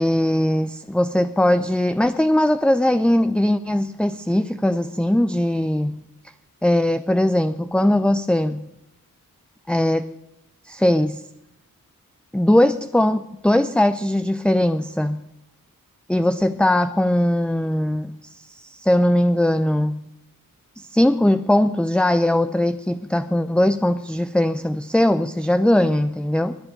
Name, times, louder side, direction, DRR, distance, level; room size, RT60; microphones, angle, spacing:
voice 1, 0.0-6.0 6.6-8.7 9.7-10.1 10.6-11.2 12.3-15.2 16.1-20.1 20.8-26.6, left 1 dB, 5° left, 10 dB, 0.6 m, -20 dB
22.0 x 9.7 x 6.6 m, 0.88 s
cardioid pair, 60°, 34 cm